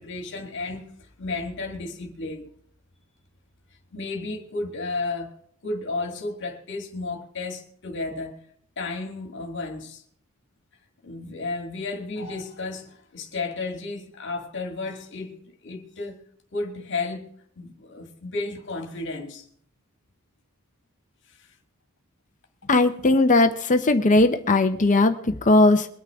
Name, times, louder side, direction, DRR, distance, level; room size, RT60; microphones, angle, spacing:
voice 1, 0.0-2.5 3.9-5.4 5.6-8.4 8.8-10.0 11.0-16.2 16.5-17.3 17.6-19.5 21.4-21.5, left 3 dB, 55° left, 2.0 m, -33 dB
voice 2, 22.7-25.9, left 2 dB, 35° left, 0.8 m, -18 dB
23.0 x 9.5 x 3.6 m
head